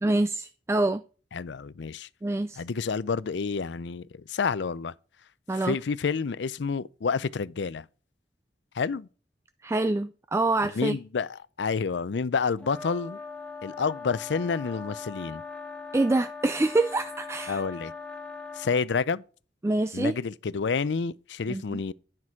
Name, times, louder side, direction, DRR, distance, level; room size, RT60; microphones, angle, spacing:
voice 1, 0.0-1.0 2.2-2.6 5.5-5.8 9.6-11.0 15.9-17.6 19.6-20.2 21.5-21.8, right 2 dB, 15° right, 0.3 m, -26 dB
voice 2, 1.3-2.1 2.6-4.9 5.5-7.8 8.7-9.1 10.7-13.2 13.6-15.4 17.5-17.9 18.5-19.2 19.9-21.9, left 5 dB, 80° left, 0.5 m, -29 dB
sound 1, 12.6-18.8, left 4 dB, 5° left, 1.2 m, -40 dB
9.9 x 6.0 x 4.6 m
head